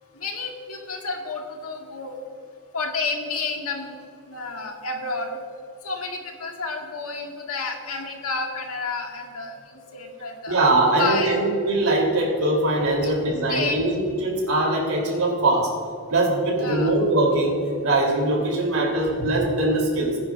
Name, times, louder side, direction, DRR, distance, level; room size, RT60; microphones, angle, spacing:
voice 1, 0.2-2.2 2.7-4.0 4.3-5.3 5.8-10.6 11.0-11.4 13.0-13.2 13.5-13.8 16.6-16.9, left 4 dB, 85° left, 1 dB, 1.8 m, -30 dB
voice 2, 10.5-15.7 16.1-20.2, right 2 dB, 75° right, -1 dB, 3.2 m, -22 dB
19.5 x 10.0 x 2.5 m, 2.3 s
head